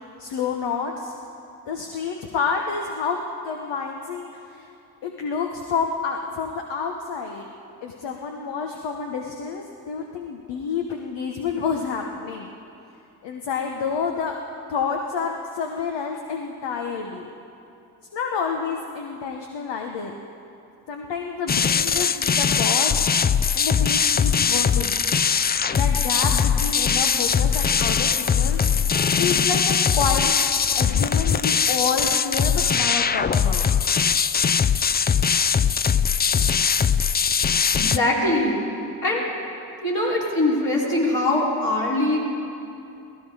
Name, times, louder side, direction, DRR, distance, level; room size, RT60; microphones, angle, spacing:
voice 1, 0.2-1.2 1.7-3.2 3.4-4.7 5.0-7.5 7.8-12.5 13.2-14.3 14.7-17.3 18.1-20.1 20.9-22.9 23.5-25.0 25.6-28.6 29.1-30.3 30.7-33.7, left 6 dB, 75° left, 2 dB, 1.2 m, -29 dB
sound 1, 21.5-38.0, left 7 dB, 25° left, 0.4 m, -21 dB
voice 2, 37.7-38.6 39.0-39.3 39.8-42.2, left 1 dB, 50° left, -5 dB, 4.8 m, -22 dB
16.5 x 15.5 x 4.9 m, 2.7 s
supercardioid pair, 50°, 44 cm